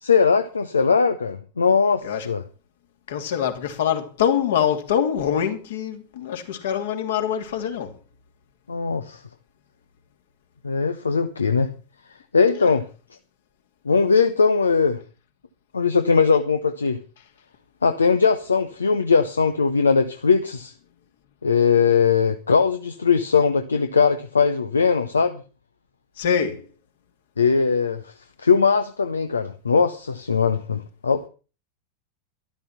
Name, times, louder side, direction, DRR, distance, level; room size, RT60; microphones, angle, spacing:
voice 1, 0.0-2.4 8.7-9.2 10.6-11.7 12.3-12.8 13.8-15.0 15.7-17.0 17.8-20.7 21.4-25.4 27.4-28.1 28.4-31.2, left 5 dB, 75° left, 1.0 m, -20 dB
voice 2, 3.1-7.9 12.5-12.7 26.2-26.6, left 8 dB, 60° left, 2.9 m, -24 dB
13.0 x 12.5 x 5.8 m
figure-of-eight pair, 90°, 0 cm